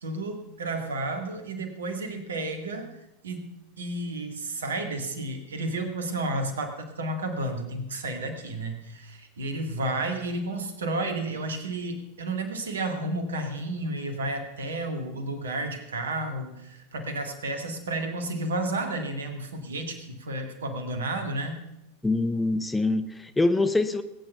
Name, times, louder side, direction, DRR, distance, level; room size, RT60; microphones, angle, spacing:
voice 1, 0.0-3.0 3.2-21.6, right 2 dB, 70° right, 6 dB, 2.0 m, -32 dB
voice 2, 22.0-24.0, left 2 dB, 10° left, 10 dB, 0.8 m, -24 dB
20.0 x 9.1 x 5.7 m, 0.91 s
figure-of-eight pair, 85°, 0 cm